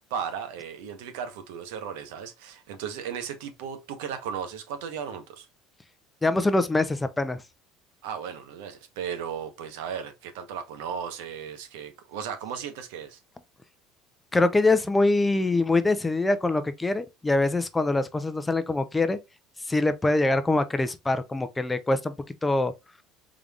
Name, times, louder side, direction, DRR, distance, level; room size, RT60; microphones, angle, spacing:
voice 1, 0.1-5.5 8.0-13.2, right 7 dB, 90° right, 0.9 m, -35 dB
voice 2, 6.2-7.4 14.3-19.2 19.7-22.1 22.4-22.7, left 2 dB, 10° left, 0.5 m, -24 dB
3.8 x 3.3 x 2.3 m
supercardioid pair, 120°, 0 cm